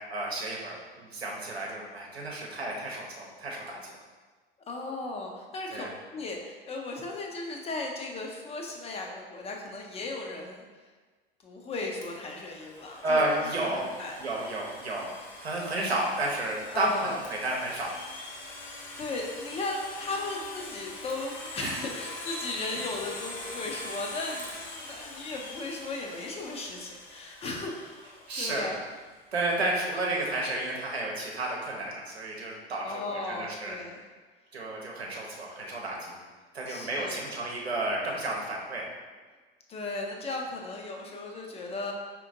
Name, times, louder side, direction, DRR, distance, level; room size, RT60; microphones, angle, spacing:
voice 1, 0.1-4.0 5.7-5.9 13.0-13.9 14.2-15.1 15.4-17.9 21.6-21.8 22.7-22.8 28.3-28.7 29.3-33.8 34.5-36.2 36.5-38.8, right 2 dB, 85° right, -2 dB, 0.8 m, -31 dB
voice 2, 4.7-10.6 11.4-13.2 13.6-14.5 16.7-17.2 18.4-18.5 19.0-28.0 28.4-28.8 32.8-34.0 36.7-37.3 39.7-41.9, left 2 dB, 20° left, 0 dB, 0.5 m, -36 dB
Domestic sounds home sounds, 12.0-28.8, left 2 dB, 50° left, 0.9 m, -43 dB
4.8 x 2.9 x 2.6 m, 1.4 s
figure-of-eight pair, 80°, 31 cm